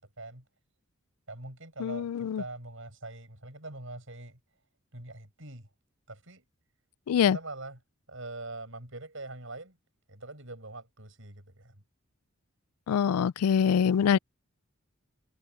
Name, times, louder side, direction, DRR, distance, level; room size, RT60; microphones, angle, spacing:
voice 1, 1.3-4.4 4.9-5.7 6.1-6.5 7.3-7.8 8.1-9.8 10.1-11.8, right 2 dB, 60° right, 7.4 m, -43 dB
voice 2, 1.8-2.4 7.1-7.4 12.9-14.2, left 7 dB, 90° left, 0.3 m, -24 dB
head